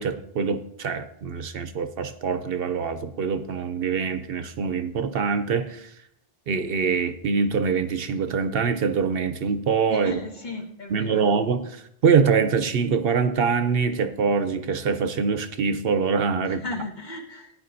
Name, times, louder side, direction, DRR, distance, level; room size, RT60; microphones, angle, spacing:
voice 1, 0.0-5.9 6.5-10.1 10.9-16.6, right 5 dB, 65° right, 0.8 m, -24 dB
voice 2, 9.9-11.3 16.4-17.5, left 2 dB, 45° left, 1.7 m, -35 dB
16.5 x 9.7 x 2.6 m
omnidirectional pair, 1.1 m